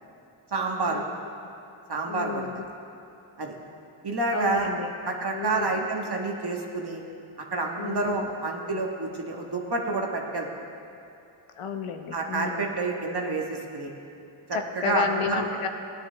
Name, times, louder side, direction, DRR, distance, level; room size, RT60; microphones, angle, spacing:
voice 1, 0.5-1.0 1.9-2.4 3.4-3.5 4.0-4.7 5.0-7.0 7.5-10.5 12.1-13.9 14.7-15.4, right 3 dB, 50° right, 0 dB, 1.5 m, -28 dB
voice 2, 2.1-2.7 4.3-4.9 5.3-5.9 7.8-8.3 11.5-12.7 14.5-15.7, left 6 dB, 80° left, 6 dB, 0.9 m, -32 dB
17.0 x 9.7 x 3.4 m, 2.7 s
cardioid pair, 65°, 50 cm